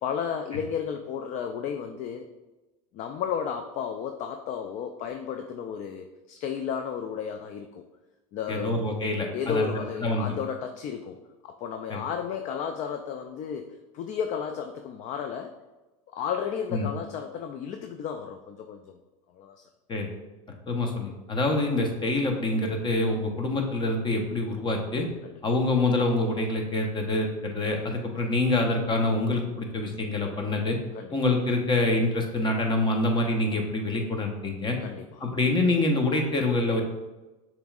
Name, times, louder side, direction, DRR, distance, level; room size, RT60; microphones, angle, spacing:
voice 1, 0.0-2.3 2.9-7.8 8.3-8.9 9.3-11.2 11.4-15.5 16.1-19.0 19.3-19.6 25.2-25.3 30.9-31.2 34.8-35.2, left 7 dB, 45° left, 6 dB, 0.4 m, -33 dB
voice 2, 8.5-9.7 10.0-10.3 11.9-12.0 16.7-16.9 19.9-20.1 20.7-25.1 25.4-30.8 31.1-34.8 35.2-36.8, left 2 dB, 25° left, 2 dB, 1.0 m, -26 dB
6.7 x 3.1 x 2.4 m, 1.1 s
hypercardioid pair, 95°, 18 cm